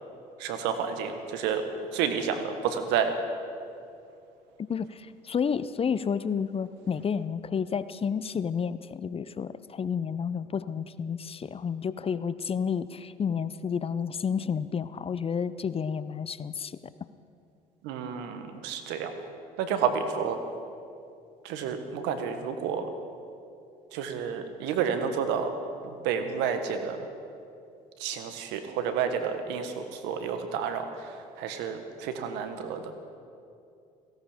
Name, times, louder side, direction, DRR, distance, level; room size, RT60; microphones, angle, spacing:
voice 1, 0.4-1.7 1.9-3.1 17.8-19.1 19.6-20.4 21.4-22.9 23.9-25.5 25.8-27.1 28.0-32.9, right 7 dB, 75° right, 7 dB, 1.5 m, -30 dB
voice 2, 4.7-16.8, left 6 dB, 30° left, 15 dB, 0.6 m, -30 dB
17.0 x 16.0 x 5.1 m, 2.5 s
hypercardioid pair, 65°, 18 cm